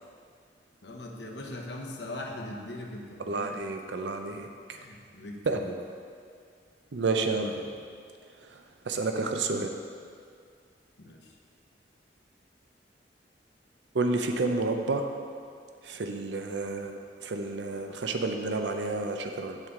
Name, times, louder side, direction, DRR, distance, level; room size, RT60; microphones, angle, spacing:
voice 1, 0.8-3.6 4.7-5.7 11.0-11.3, left 1 dB, 75° left, 1 dB, 1.0 m, -40 dB
voice 2, 3.3-4.5 5.5-5.6 6.9-7.5 8.4-9.7 13.9-15.1 15.8-19.6, right 3 dB, 90° right, 5 dB, 0.6 m, -30 dB
8.2 x 7.5 x 3.7 m, 2.2 s
head